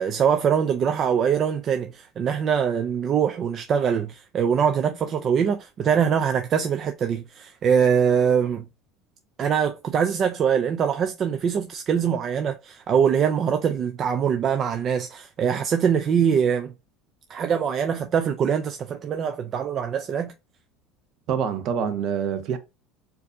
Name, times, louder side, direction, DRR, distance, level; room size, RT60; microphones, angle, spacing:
voice 1, 0.0-8.6 9.4-16.7 17.3-20.3, right 7 dB, 35° right, 0.4 m, -23 dB
voice 2, 21.3-22.6, right 7 dB, 55° right, 0.7 m, -26 dB
4.4 x 2.6 x 2.6 m
cardioid pair, 130°, 0 cm